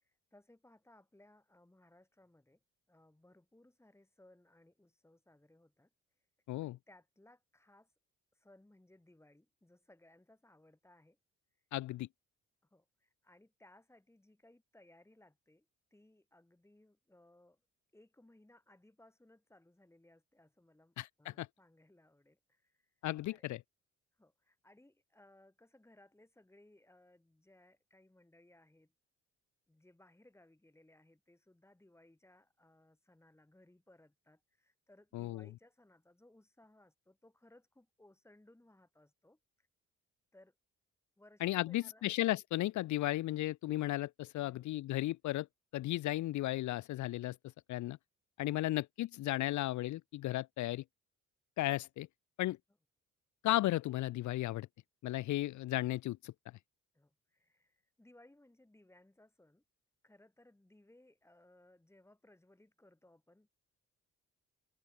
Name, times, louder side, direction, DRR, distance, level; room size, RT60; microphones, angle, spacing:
voice 1, 0.3-2.6 2.9-5.9 6.6-7.9 8.4-11.2 12.7-15.6 15.9-17.6 17.9-22.9 23.2-23.5 24.2-28.9 29.7-39.7 40.3-40.5 41.2-42.1 44.4-44.9 56.9-59.6 60.0-63.5, left 1 dB, 10° left, 4.6 m, -64 dB
voice 2, 11.7-12.1 21.0-21.5 23.0-23.6 35.1-35.5 41.4-45.5 45.7-47.4 47.7-48.0 48.4-50.8 51.6-52.1 52.4-52.6 53.4-54.7 55.0-56.3, left 16 dB, 70° left, 0.6 m, -35 dB
cardioid pair, 90°, 30 cm